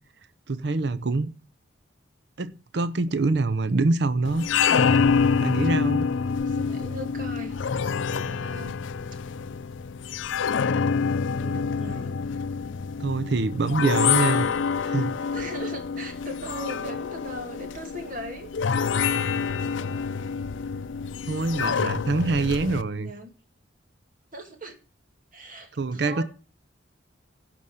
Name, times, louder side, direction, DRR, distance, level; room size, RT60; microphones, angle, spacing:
voice 1, 0.5-1.3 2.4-4.4 5.4-6.1 13.0-14.5 14.9-15.3 21.3-23.1 25.8-26.2, right 3 dB, 60° right, 0.6 m, -25 dB
sound 1, 4.3-22.8, left 6 dB, 85° left, 0.5 m, -26 dB
voice 2, 6.3-7.6 8.1-8.8 9.1-9.2 11.1-12.2 14.3-14.7 15.3-18.5 18.8-19.9 22.7-23.3 24.3-24.8 25.3-26.2, equal, 45° right, 2.3 m, -40 dB
11.0 x 5.2 x 7.8 m
head